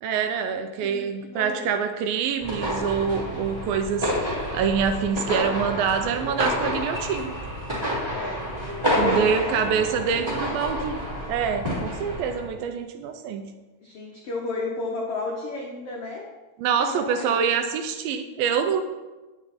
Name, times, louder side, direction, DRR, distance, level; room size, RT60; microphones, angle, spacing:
voice 1, 0.0-7.3 9.0-11.0 11.3-13.4 16.6-18.8, right 7 dB, 80° right, 7 dB, 2.2 m, -26 dB
voice 2, 0.8-1.7 8.1-8.4 8.8-10.2 10.5-10.6 13.8-16.2 16.8-17.7, left 3 dB, 80° left, -1 dB, 1.3 m, -33 dB
sound 1, 2.4-12.4, equal, 10° right, 1.8 m, -29 dB
9.6 x 9.3 x 4.2 m, 1.2 s
omnidirectional pair, 4.5 m